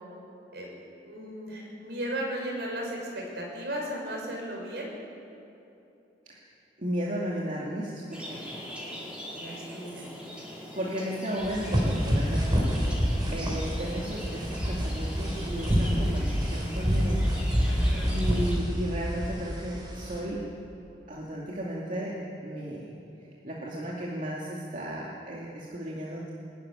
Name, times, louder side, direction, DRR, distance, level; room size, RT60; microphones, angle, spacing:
voice 1, 1.1-4.9 9.4-10.1 17.7-18.1, right 1 dB, 70° right, -1 dB, 6.0 m, -35 dB
voice 2, 6.8-8.8 9.6-9.7 10.7-17.2 18.1-20.5 21.1-22.9 23.4-26.3, equal, 45° right, -4 dB, 2.5 m, -34 dB
sound 1, 8.1-18.6, equal, 5° right, 4.3 m, -41 dB
sound 2, 11.4-20.2, equal, 25° right, 4.2 m, -27 dB
21.5 x 13.5 x 10.0 m, 2.9 s
head